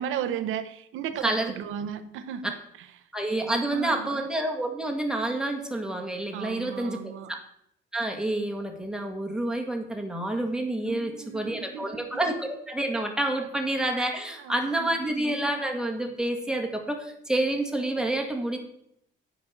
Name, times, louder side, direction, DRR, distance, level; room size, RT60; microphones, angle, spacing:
voice 1, 0.0-3.1 3.4-4.2 6.3-7.3 10.8-12.2 14.4-15.0, right 8 dB, 85° right, 11 dB, 0.9 m, -35 dB
voice 2, 3.1-7.4 7.9-18.6, right 1 dB, 5° right, 1 dB, 2.0 m, -28 dB
9.4 x 5.4 x 6.7 m, 0.74 s
cardioid pair, 90°, 20 cm